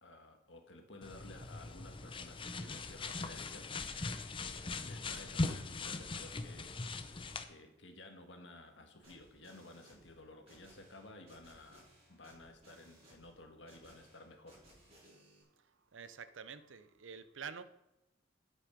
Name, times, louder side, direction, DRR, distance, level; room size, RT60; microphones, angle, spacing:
voice 1, 0.0-6.8 7.5-14.6, left 2 dB, 70° left, 4 dB, 1.7 m, -55 dB
sound 1, 1.0-7.4, left 3 dB, 25° left, 0.7 m, -40 dB
sound 2, 9.0-15.4, right 1 dB, 35° right, 4.8 m, -63 dB
voice 2, 15.6-17.6, right 6 dB, 85° right, 13 dB, 0.7 m, -48 dB
10.5 x 8.3 x 5.2 m, 0.92 s
head